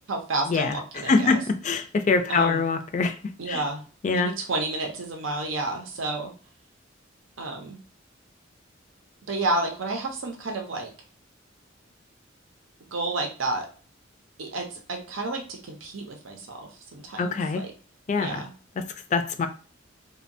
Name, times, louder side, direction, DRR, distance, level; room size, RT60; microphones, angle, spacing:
voice 1, 0.1-1.4 2.3-2.6 3.4-3.8 4.1-6.3 7.4-7.8 9.3-10.9 12.9-13.7 14.4-17.7 18.2-18.5, right 2 dB, 90° right, 2 dB, 0.6 m, -30 dB
voice 2, 1.1-3.2 3.5-3.6 4.0-4.3 17.2-17.6 18.1-18.4 19.1-19.5, left 4 dB, 40° left, 8 dB, 0.3 m, -24 dB
2.8 x 2.2 x 2.6 m, 0.38 s
head